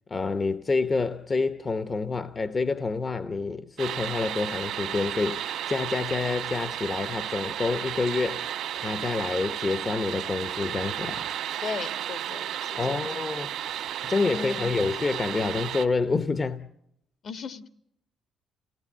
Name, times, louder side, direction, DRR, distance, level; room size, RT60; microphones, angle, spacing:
voice 1, 0.1-8.5 8.8-11.3 12.8-13.5 14.0-16.7, left 4 dB, 35° left, 0.8 m, -28 dB
sound 1, 3.8-15.9, right 10 dB, 85° right, 1.5 m, -33 dB
voice 2, 11.6-13.0 14.3-14.7 17.2-17.7, left 5 dB, 60° left, 1.6 m, -37 dB
29.0 x 18.0 x 7.4 m
cardioid pair, 90°, 0 cm